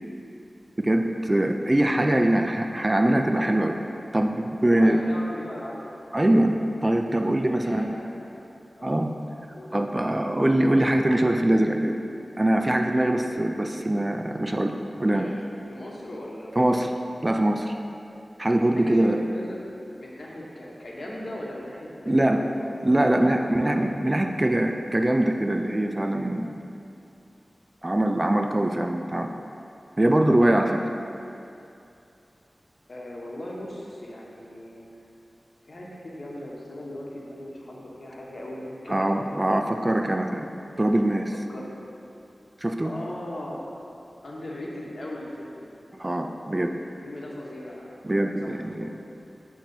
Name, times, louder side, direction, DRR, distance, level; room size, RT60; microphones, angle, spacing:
voice 1, 0.8-3.7 4.1-5.0 6.1-6.6 6.8-7.9 8.8-9.1 9.7-11.9 12.4-14.7 15.0-15.3 16.6-16.9 17.2-17.7 18.4-19.2 22.1-22.4 22.8-26.6 27.8-29.3 30.0-30.8 38.9-40.5 40.8-41.3 42.6-42.9 46.0-46.7 48.0-48.9, right 1 dB, 30° right, 4 dB, 0.3 m, -22 dB
voice 2, 4.7-6.3 7.6-8.4 8.7-8.9 9.5-9.7 15.1-15.3 15.7-16.9 18.7-22.7 23.5-23.7 32.9-35.0 35.6-39.5 41.5-41.8 42.8-43.8 44.2-45.8 47.0-48.0 48.4-48.9, left 1 dB, 60° left, -4 dB, 1.0 m, -38 dB
8.2 x 3.1 x 3.9 m, 2.6 s
wide cardioid pair, 65°, 0 cm